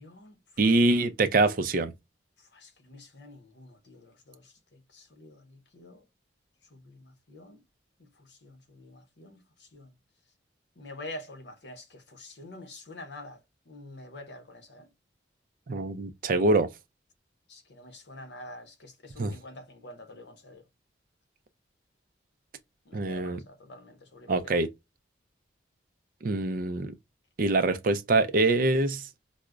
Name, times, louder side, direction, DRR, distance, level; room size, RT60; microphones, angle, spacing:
voice 1, 0.0-1.0 2.4-6.1 6.7-7.6 8.0-9.9 10.8-13.4 13.7-14.9 17.5-20.7 22.9-24.6, left 1 dB, 65° left, 0.7 m, -47 dB
voice 2, 0.6-1.9 15.7-16.7 19.2-19.3 22.9-23.4 24.3-24.7 26.2-26.9 27.4-29.1, right 2 dB, 45° right, 0.4 m, -24 dB
4.8 x 2.0 x 2.3 m
head